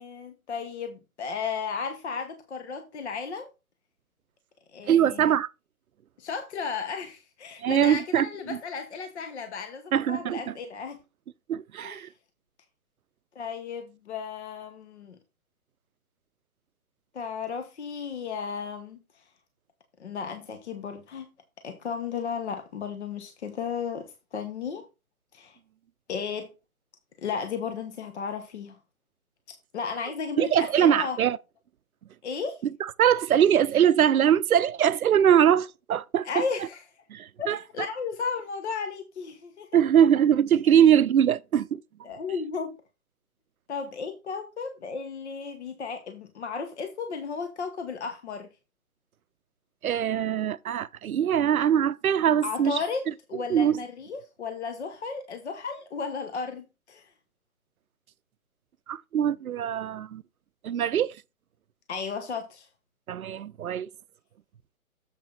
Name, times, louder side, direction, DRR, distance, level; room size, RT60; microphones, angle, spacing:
voice 1, 0.0-3.5 4.7-5.3 6.2-11.0 11.8-12.1 13.3-15.2 17.1-19.2 20.0-21.3 21.6-24.8 25.3-25.6 26.1-26.5 27.2-28.8 29.5-31.2 32.2-32.6 36.2-36.8 37.4-39.7 42.0-42.7 43.7-48.5 52.4-57.1 61.9-62.7, left 5 dB, 50° left, 1.1 m, -34 dB
voice 2, 4.9-5.5 7.6-8.6 9.9-10.5 11.5-12.1 30.4-31.4 32.8-36.4 37.1-37.6 39.7-41.8 49.8-52.8 53.5-53.8 58.9-60.2 60.6-61.1 63.1-63.9, right 9 dB, 70° right, 0.6 m, -22 dB
7.4 x 5.9 x 4.0 m
hypercardioid pair, 155°, 44 cm